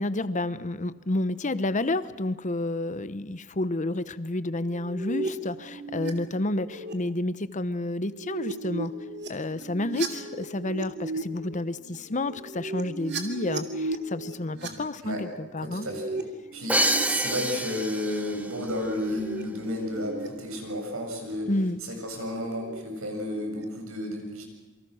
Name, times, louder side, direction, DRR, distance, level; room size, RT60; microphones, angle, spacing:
voice 1, 0.0-8.9 9.3-15.9 21.5-21.8, left 2 dB, 35° left, 14 dB, 0.9 m, -30 dB
sound 1, 4.6-6.1 6.5-6.9 7.9-14.7 15.6-17.0 17.4-17.8 18.9-19.4 19.7-20.3 20.9-21.1 22.5-22.8 23.2-23.6, right 3 dB, 55° right, 2.7 m, -36 dB
voice 2, 14.6-15.2 15.6-16.2 16.5-21.5 21.8-24.4, equal, 80° right, 3 dB, 7.1 m, -32 dB
Crash cymbal, 16.7-18.6, right 1 dB, 5° right, 1.0 m, -27 dB
27.5 x 24.5 x 6.4 m, 1.2 s
head